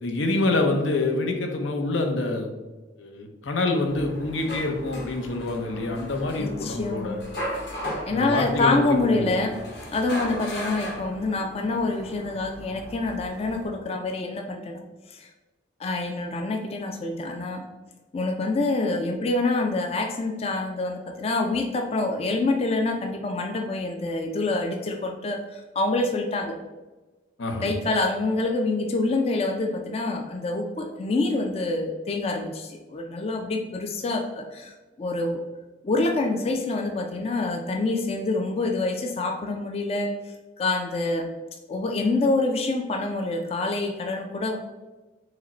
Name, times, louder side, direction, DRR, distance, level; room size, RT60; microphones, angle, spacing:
voice 1, 0.0-2.5 3.0-7.2 8.1-9.4 27.4-27.7, left 2 dB, 85° left, 4 dB, 0.7 m, -26 dB
sound 1, 3.9-13.7, equal, 60° left, 1.3 m, -37 dB
voice 2, 6.3-7.2 8.1-9.5 9.9-15.3 15.8-17.6 18.1-26.6 27.6-35.4 35.8-40.1 40.6-41.3 41.7-44.6, left 2 dB, 30° left, 3 dB, 0.3 m, -26 dB
4.8 x 2.1 x 4.1 m, 1.2 s
head